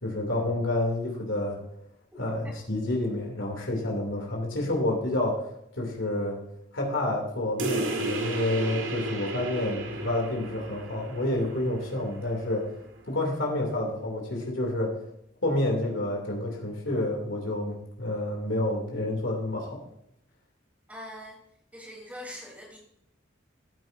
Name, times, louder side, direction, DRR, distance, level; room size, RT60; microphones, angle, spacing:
voice 1, 0.0-1.6 2.2-6.4 6.7-12.6 13.1-15.0 15.4-19.8, left 1 dB, 85° left, 0 dB, 3.0 m, -29 dB
sound 1, 7.6-12.6, right 2 dB, 85° right, 2.0 m, -34 dB
voice 2, 20.9-21.4 21.7-22.8, left 1 dB, 10° right, -2 dB, 3.7 m, -42 dB
14.5 x 9.1 x 2.7 m, 0.74 s
head